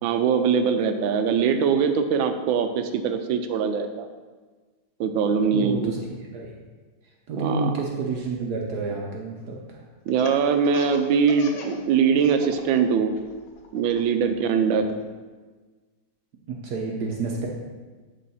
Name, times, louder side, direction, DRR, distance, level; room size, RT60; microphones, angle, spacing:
voice 1, 0.0-4.1 5.0-5.9 7.4-7.7 10.1-13.1 13.7-14.9, right 6 dB, 90° right, 8 dB, 1.4 m, -22 dB
voice 2, 5.5-6.5 7.3-9.8 14.8-14.9 16.5-17.5, right 3 dB, 65° right, -1 dB, 1.2 m, -30 dB
Laughter, 10.1-11.8 12.1-12.8 13.2-14.9, left 4 dB, 85° left, 1.6 m, -39 dB
11.0 x 3.8 x 4.2 m, 1.4 s
omnidirectional pair, 2.1 m